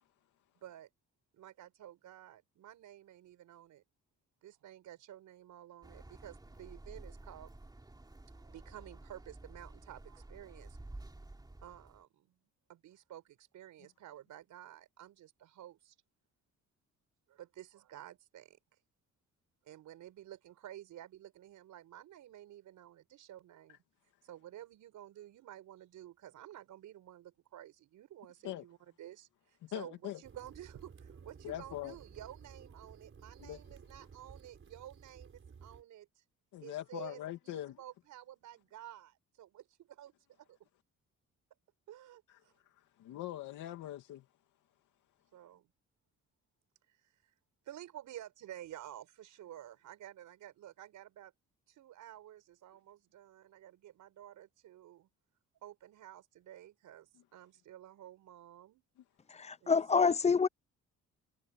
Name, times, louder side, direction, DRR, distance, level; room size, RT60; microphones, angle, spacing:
voice 1, 1.3-3.8 4.4-7.5 8.3-10.8 11.6-12.4 12.7-15.9 17.3-18.6 19.6-23.8 24.2-36.2 36.6-40.1 40.4-40.6 41.9-42.5 45.3-45.7 46.9-47.3 47.6-51.3 51.7-55.1 55.6-58.8 59.6-59.8, right 12 dB, 80° right, 6.1 m, -52 dB
sound 1, 5.8-12.0, right 2 dB, 15° right, 3.2 m, -52 dB
voice 2, 29.6-30.2 31.4-31.9 33.4-33.6 36.5-37.8 42.3-44.2, left 13 dB, 90° left, 2.6 m, -42 dB
sound 2, 30.2-35.8, right 6 dB, 40° right, 5.7 m, -55 dB
voice 3, 59.3-60.5, left 5 dB, 20° left, 0.6 m, -27 dB
cardioid pair, 90°, 30 cm